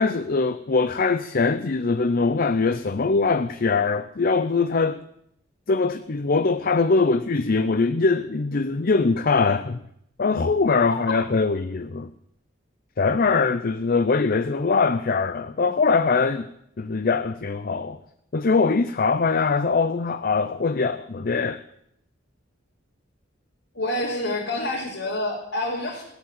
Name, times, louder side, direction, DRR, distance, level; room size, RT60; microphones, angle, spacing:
voice 1, 0.0-5.0 5.7-9.8 10.2-12.1 13.0-16.5 16.8-18.0 18.3-21.6, left 4 dB, 50° left, 0.6 m, -22 dB
voice 2, 23.7-26.0, left 1 dB, 70° left, 3.7 m, -27 dB
16.5 x 10.5 x 8.4 m
head